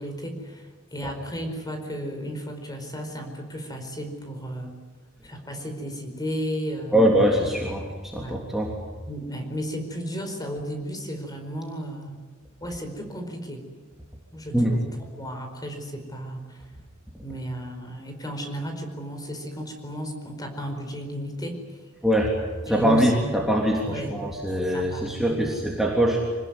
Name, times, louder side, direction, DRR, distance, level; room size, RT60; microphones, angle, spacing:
voice 1, 0.0-4.7 5.2-7.1 8.2-8.4 9.1-12.2 12.6-13.6 14.3-14.8 15.1-16.6 17.2-21.6 22.7-23.1 23.8-24.1 24.7-25.4, equal, 20° left, 5 dB, 4.8 m, -34 dB
voice 2, 6.9-8.7 14.5-14.7 22.0-22.3 22.6-26.2, equal, ahead, -2 dB, 3.3 m, -22 dB
26.0 x 20.0 x 9.6 m, 1.4 s
head